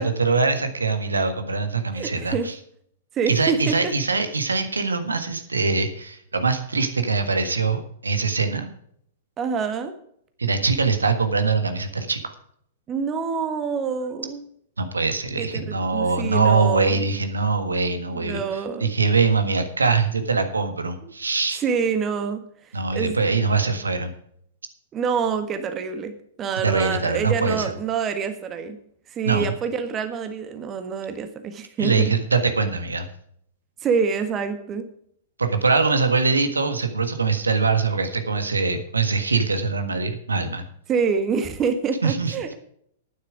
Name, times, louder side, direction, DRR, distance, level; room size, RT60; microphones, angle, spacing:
voice 1, 0.0-2.5 3.3-8.7 10.4-12.3 14.8-18.4 18.8-21.6 22.7-24.1 26.6-27.7 29.2-29.5 31.8-33.1 35.4-40.7 42.0-42.3, right 4 dB, 80° right, 9 dB, 1.5 m, -23 dB
voice 2, 1.9-2.5 3.1-3.9 9.4-9.9 12.9-14.4 15.4-17.0 18.1-18.9 21.0-21.1 21.6-22.4 22.9-23.2 24.9-28.8 29.1-32.0 33.8-34.9 40.9-42.5, right 6 dB, 25° right, 8 dB, 1.6 m, -26 dB
11.5 x 9.7 x 4.9 m, 0.67 s
figure-of-eight pair, 105°, 0 cm